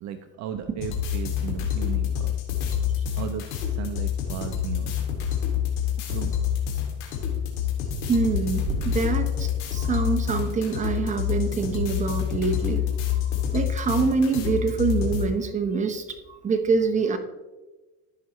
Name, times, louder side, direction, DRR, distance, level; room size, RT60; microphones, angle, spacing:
voice 1, 0.0-2.3 3.2-4.9 6.1-6.3, right 9 dB, 50° right, 8 dB, 0.6 m, -35 dB
sound 1, 0.8-15.2, left 9 dB, 80° left, 2.6 m, -27 dB
Thunder / Rain, 4.2-12.5, right 3 dB, 75° right, 1.9 m, -41 dB
voice 2, 8.1-13.1 13.4-17.2, right 4 dB, 20° right, 5 dB, 1.0 m, -25 dB
14.5 x 5.6 x 3.1 m, 1.1 s
cardioid pair, 130°, 37 cm